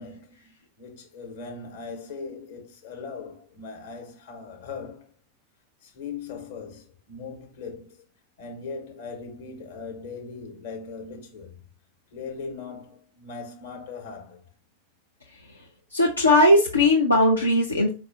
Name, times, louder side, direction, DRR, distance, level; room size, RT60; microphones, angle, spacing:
voice 1, 0.0-5.1 5.8-8.0 8.4-11.6 12.1-14.4, left 4 dB, 55° left, 1.0 m, -39 dB
voice 2, 15.9-17.9, left 1 dB, 80° left, 0.5 m, -18 dB
4.6 x 2.3 x 2.5 m
figure-of-eight pair, 90°, 0 cm